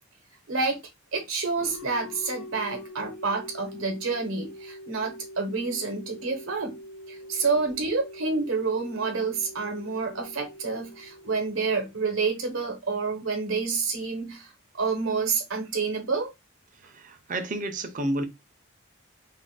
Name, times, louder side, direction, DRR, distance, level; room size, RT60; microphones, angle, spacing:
voice 1, 0.5-0.8 1.1-6.8 7.1-16.3, right 4 dB, 80° right, 0.8 m, -28 dB
sound 1, 1.6-12.3, left 1 dB, 90° left, 0.5 m, -44 dB
voice 2, 16.8-18.2, right 1 dB, 40° right, 0.4 m, -30 dB
2.5 x 2.0 x 3.8 m
head